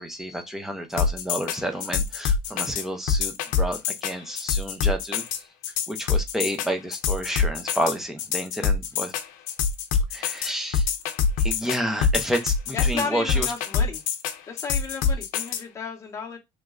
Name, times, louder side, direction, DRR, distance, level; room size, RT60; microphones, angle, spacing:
voice 1, 0.0-5.2 5.9-9.1 10.1-10.9 11.4-13.5, equal, 5° right, 0.4 m, -30 dB
sound 1, 1.0-15.6, left 6 dB, 85° left, 0.5 m, -25 dB
voice 2, 12.7-14.0 14.5-16.4, left 5 dB, 20° left, 0.7 m, -33 dB
3.1 x 2.2 x 3.6 m
cardioid pair, 170°, 14 cm